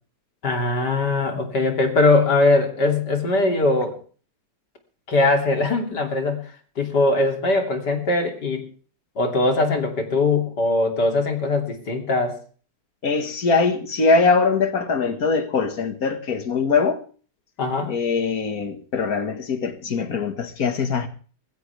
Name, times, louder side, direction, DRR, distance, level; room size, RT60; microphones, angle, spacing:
voice 1, 0.4-4.0 5.1-8.6 9.2-12.4 17.6-17.9, left 2 dB, 85° left, 3.5 m, -21 dB
voice 2, 13.0-17.0 17.9-21.1, left 4 dB, 60° left, 2.2 m, -22 dB
20.0 x 16.0 x 3.4 m
omnidirectional pair, 1.8 m